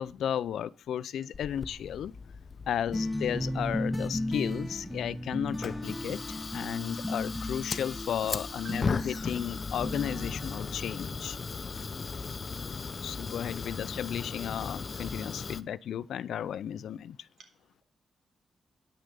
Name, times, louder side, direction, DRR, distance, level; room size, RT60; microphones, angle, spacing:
voice 1, 0.0-2.1 2.7-11.4 13.0-17.2, left 9 dB, 85° left, 0.4 m, -34 dB
Fire, 1.3-15.6, left 4 dB, 50° left, 0.7 m, -38 dB
sound 1, 2.9-11.4, left 1 dB, 5° left, 1.4 m, -36 dB
voice 2, 17.4-17.8, right 4 dB, 70° right, 3.6 m, -58 dB
9.8 x 6.5 x 6.7 m
cardioid pair, 65°, 0 cm